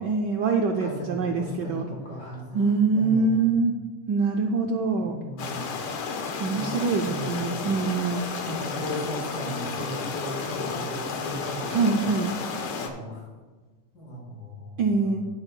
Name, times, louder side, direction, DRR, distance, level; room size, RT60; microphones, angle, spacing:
voice 1, 0.0-1.9 2.5-3.7 4.1-5.2 6.4-8.2 11.7-12.3 14.8-15.3, right 4 dB, 70° right, 3 dB, 1.1 m, -24 dB
voice 2, 0.6-3.4 5.0-5.7 6.4-7.7 8.4-12.2 12.8-13.3 13.9-15.2, equal, 45° left, -5 dB, 3.8 m, -37 dB
sound 1, 5.4-12.9, left 5 dB, 80° left, 1.9 m, -32 dB
12.0 x 10.5 x 2.2 m, 1.3 s
omnidirectional pair, 2.4 m